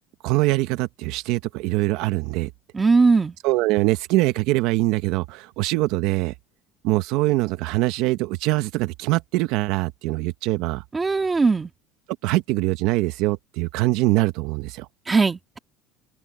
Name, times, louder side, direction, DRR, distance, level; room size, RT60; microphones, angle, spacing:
voice 1, 0.2-2.5 3.4-6.3 6.8-10.8 12.2-14.9, right 19 dB, 65° right, 0.8 m, -23 dB
voice 2, 2.7-3.4 10.9-11.7 15.1-15.6, right 4 dB, 15° right, 1.9 m, -19 dB
open air
cardioid pair, 155°, 0 cm